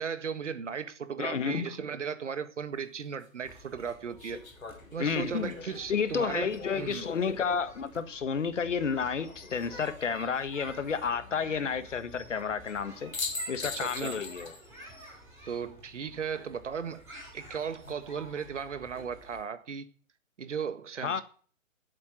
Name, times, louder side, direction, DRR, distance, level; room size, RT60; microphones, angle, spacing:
voice 1, 0.0-4.4 4.9-7.1 13.7-14.2 15.5-17.0 17.3-19.9 20.4-21.2, right 6 dB, 60° right, 1.7 m, -36 dB
voice 2, 1.2-1.7 5.0-5.5 5.9-13.1 13.5-14.5 21.0-21.2, left 6 dB, 65° left, 1.5 m, -31 dB
sound 1, 2.7-2.8 4.2-7.4 9.2-9.9 12.7-12.8 13.1-14.7 15.0-15.1 17.4-17.9, left 3 dB, 80° left, 3.2 m, -41 dB
sound 2, 3.4-19.4, equal, 5° right, 5.9 m, -51 dB
12.0 x 8.1 x 7.9 m
hypercardioid pair, 160°, 40 cm